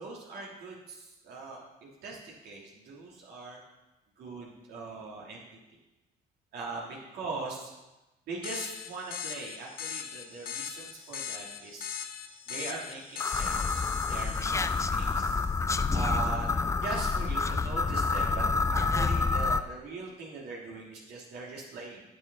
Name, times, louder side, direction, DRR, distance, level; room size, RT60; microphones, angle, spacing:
voice 1, 0.0-1.6 2.0-3.6 4.2-5.5 6.5-7.7 8.3-11.9 12.5-14.5 14.9-15.4 15.9-16.5 16.8-18.4 18.7-22.0, right 3 dB, 70° right, -3 dB, 3.2 m, -40 dB
sound 1, 8.4-15.6, left 9 dB, 60° left, 1.2 m, -40 dB
sound 2, 13.2-19.6, left 4 dB, 15° left, 0.5 m, -28 dB
16.5 x 8.8 x 4.2 m, 1.0 s
cardioid pair, 110°, 17 cm